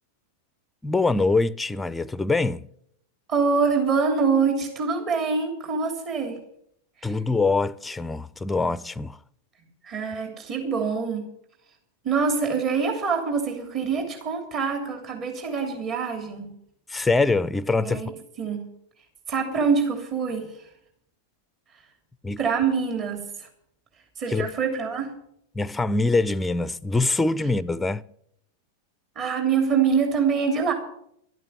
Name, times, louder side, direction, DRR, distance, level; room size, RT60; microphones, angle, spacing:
voice 1, 0.8-2.7 7.0-9.2 16.9-18.0 22.2-22.4 24.3-24.5 25.5-28.0, left 3 dB, 10° left, 0.5 m, -24 dB
voice 2, 3.3-6.4 7.0-7.1 9.8-11.2 12.0-16.5 17.8-18.1 18.4-18.6 19.3-20.6 22.4-23.5 24.2-25.1 29.1-30.7, right 5 dB, 35° right, 3.1 m, -25 dB
12.5 x 8.9 x 9.2 m
hypercardioid pair, 105°, 0 cm